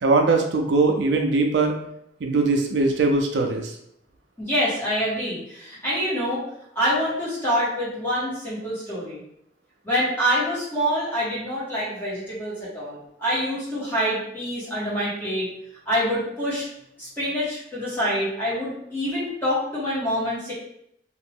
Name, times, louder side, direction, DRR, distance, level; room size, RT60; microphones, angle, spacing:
voice 1, 0.0-1.8 2.2-3.8, right 3 dB, 75° right, 4 dB, 0.4 m, -21 dB
voice 2, 4.4-6.4 6.7-9.2 9.8-15.5 15.8-16.7 17.0-20.5, equal, 10° left, -9 dB, 1.5 m, -26 dB
2.8 x 2.5 x 3.5 m, 0.74 s
head